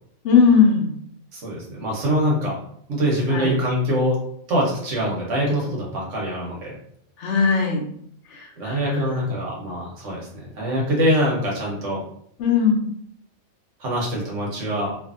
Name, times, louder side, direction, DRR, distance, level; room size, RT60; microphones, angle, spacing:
voice 1, 0.2-0.9 3.3-3.5 7.2-7.9 8.3-9.1 12.4-12.8, left 5 dB, 80° left, 1 dB, 0.9 m, -19 dB
voice 2, 1.3-2.6 2.9-4.2 4.5-6.7 8.6-12.0 13.8-14.9, equal, 90° right, -3 dB, 1.3 m, -24 dB
2.7 x 2.5 x 2.5 m, 0.68 s
omnidirectional pair, 1.2 m